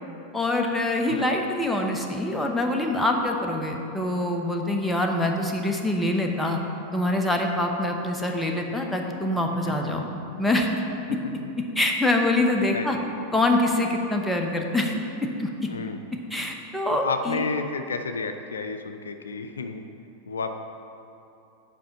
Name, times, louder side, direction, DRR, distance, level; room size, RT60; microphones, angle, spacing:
voice 1, 0.3-6.6 6.9-10.0 10.4-10.7 11.1-11.2 11.8-13.0 13.3-14.9 15.2-15.5 16.3-17.4, left 1 dB, 5° left, 1 dB, 1.0 m, -25 dB
voice 2, 16.9-19.8 20.3-20.5, left 4 dB, 85° left, 7 dB, 0.4 m, -31 dB
7.5 x 5.1 x 5.8 m, 2.8 s
hypercardioid pair, 90°, 0 cm